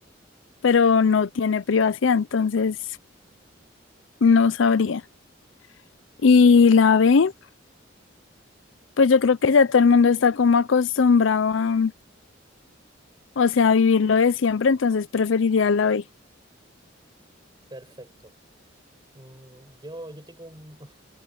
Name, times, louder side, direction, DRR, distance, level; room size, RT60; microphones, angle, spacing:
voice 1, 0.6-2.8 4.2-5.0 6.2-7.3 9.0-11.9 13.4-16.0, left 5 dB, 75° left, 0.5 m, -18 dB
voice 2, 17.7-18.4 19.1-21.0, right 1 dB, 20° right, 7.7 m, -43 dB
head